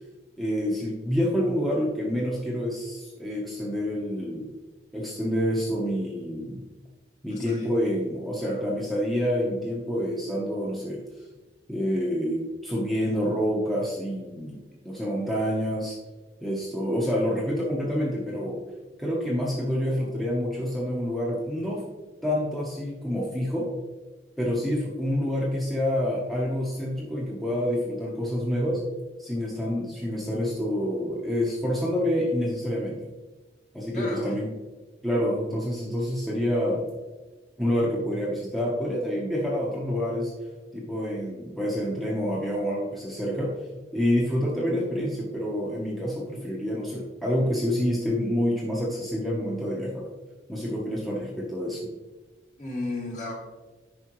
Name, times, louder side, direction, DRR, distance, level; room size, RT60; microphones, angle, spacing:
voice 1, 0.4-4.5 4.9-6.6 7.2-11.0 11.7-16.0 16.4-18.6 19.0-21.8 22.2-23.7 24.4-28.8 29.2-33.0 33.7-34.5 35.0-36.8 37.6-40.3 40.7-43.5 43.9-50.0 50.5-51.9, equal, ahead, -5 dB, 1.0 m, -27 dB
voice 2, 7.3-7.7 8.4-8.6 33.9-34.4 52.6-53.3, left 2 dB, 40° left, -4 dB, 2.6 m, -34 dB
9.6 x 5.7 x 3.1 m, 1.2 s
head